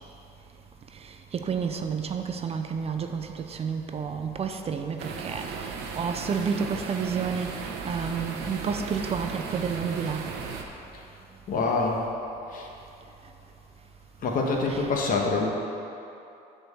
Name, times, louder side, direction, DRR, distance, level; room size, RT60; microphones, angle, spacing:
voice 1, 1.0-7.6 7.8-10.3 14.7-14.9, right 6 dB, 35° right, 6 dB, 0.5 m, -30 dB
sound 1, 5.0-10.6, right 5 dB, 90° right, 0.9 m, -36 dB
voice 2, 11.5-12.0 12.5-12.7 14.2-15.5, left 3 dB, 55° left, 0 dB, 1.3 m, -25 dB
7.7 x 4.5 x 7.0 m, 2.8 s
cardioid pair, 110°, 17 cm